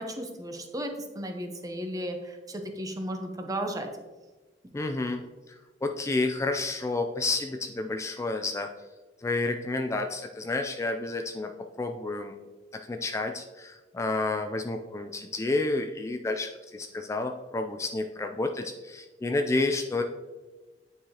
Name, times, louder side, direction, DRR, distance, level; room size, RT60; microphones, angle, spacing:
voice 1, 0.0-3.9, right 1 dB, 20° right, 4 dB, 0.8 m, -34 dB
voice 2, 4.7-5.2 5.8-8.7 9.2-11.5 11.8-12.4 12.9-20.0, left 2 dB, 15° left, 4 dB, 0.3 m, -30 dB
9.1 x 4.7 x 2.8 m, 1.2 s
head